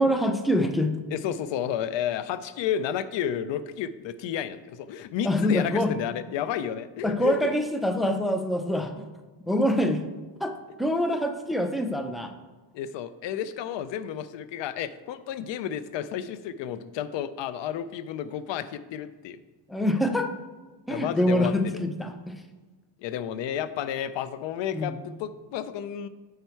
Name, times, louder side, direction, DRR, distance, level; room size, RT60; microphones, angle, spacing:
voice 1, 0.0-0.9 5.2-5.9 7.0-9.0 9.5-10.0 10.4-12.3 19.7-20.3 20.9-22.4 24.7-25.0, equal, ahead, 6 dB, 0.6 m, -25 dB
voice 2, 1.1-7.3 12.7-19.4 20.9-21.8 23.0-26.1, left 9 dB, 75° left, 14 dB, 0.6 m, -31 dB
8.1 x 5.6 x 4.5 m, 1.3 s
cardioid pair, 100°, 45 cm